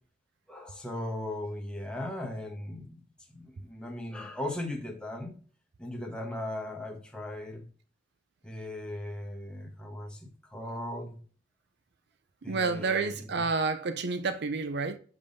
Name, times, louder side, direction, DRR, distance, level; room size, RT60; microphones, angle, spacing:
voice 1, 0.5-3.0 3.3-5.4 5.8-7.6 8.4-11.2 12.4-13.4, left 1 dB, 5° left, 1.1 m, -38 dB
voice 2, 12.4-15.0, right 4 dB, 60° right, 0.5 m, -29 dB
7.0 x 5.3 x 2.6 m
head